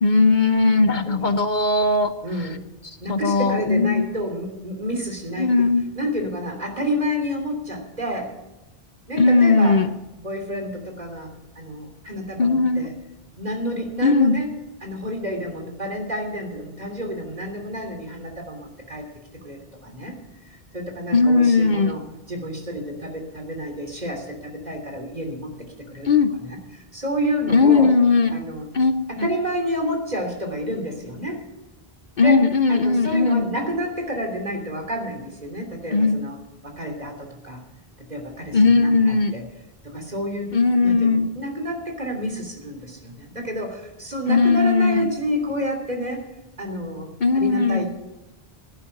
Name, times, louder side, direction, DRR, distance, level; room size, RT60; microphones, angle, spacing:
voice 1, 0.0-2.1 3.1-4.0 5.4-5.8 9.2-9.9 12.4-12.9 14.0-14.4 21.1-22.0 26.0-26.3 27.5-28.4 28.7-29.3 32.2-33.5 35.9-36.2 38.5-39.3 40.5-41.3 44.3-45.0 47.2-47.8, left 4 dB, 55° left, 9 dB, 0.8 m, -18 dB
voice 2, 0.8-1.3 2.2-2.6 3.0-8.4 9.1-9.8 10.2-12.9 13.4-14.5 14.8-19.1 19.3-20.2 20.5-27.9 28.3-28.7 29.1-31.4 32.2-32.4 32.7-36.4 36.6-37.6 38.0-39.4 39.8-46.3 46.6-47.9, equal, 45° right, 3 dB, 3.3 m, -30 dB
16.0 x 11.5 x 5.9 m, 1.0 s
omnidirectional pair, 1.0 m